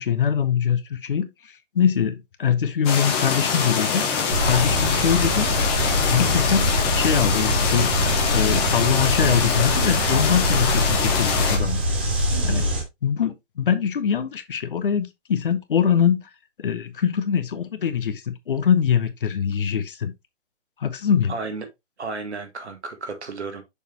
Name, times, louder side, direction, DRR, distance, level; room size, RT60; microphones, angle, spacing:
voice 1, 0.0-5.5 6.1-8.0 8.3-11.8 12.4-12.7 13.0-16.2 16.6-20.1 20.8-21.3, left 8 dB, 45° left, 0.9 m, -23 dB
sound 1, 2.8-11.6, left 6 dB, 15° left, 1.0 m, -24 dB
sound 2, 4.3-12.8, equal, 10° right, 0.5 m, -24 dB
voice 2, 21.3-21.7 22.0-23.6, right 4 dB, 65° right, 1.8 m, -33 dB
6.6 x 5.1 x 2.8 m
figure-of-eight pair, 135°, 36 cm